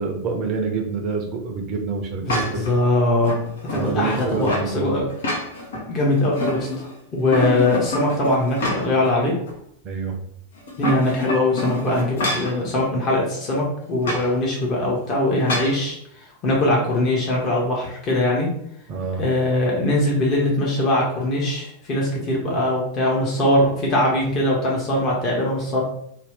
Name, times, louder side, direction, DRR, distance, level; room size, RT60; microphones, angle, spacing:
voice 1, 0.0-2.7 3.7-5.0 9.8-10.2 18.9-19.2, right 4 dB, 35° right, 2 dB, 0.6 m, -26 dB
voice 2, 2.2-3.3 3.7-5.0 5.9-9.3 10.8-16.0 16.4-18.5 19.2-25.8, left 1 dB, 30° left, -3 dB, 0.9 m, -21 dB
sound 1, 2.3-2.7 3.2-4.7 5.1-5.8 6.2-6.9 7.3-9.1 9.5-9.6 10.6-12.6 14.0-14.3 15.5-15.8, left 2 dB, 60° left, 0.6 m, -27 dB
2.7 x 2.2 x 3.4 m, 0.70 s
figure-of-eight pair, 90°, 0 cm